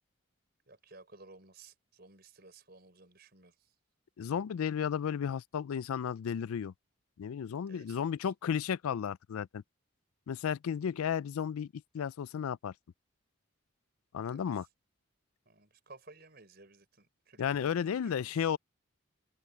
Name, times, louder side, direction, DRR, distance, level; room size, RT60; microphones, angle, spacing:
voice 1, 0.7-3.5 7.7-8.3 14.2-14.6 15.5-18.5, right 3 dB, 45° right, 5.7 m, -56 dB
voice 2, 4.2-6.7 7.2-9.6 10.3-12.7 14.1-14.7 17.4-18.6, left 8 dB, 90° left, 0.4 m, -33 dB
head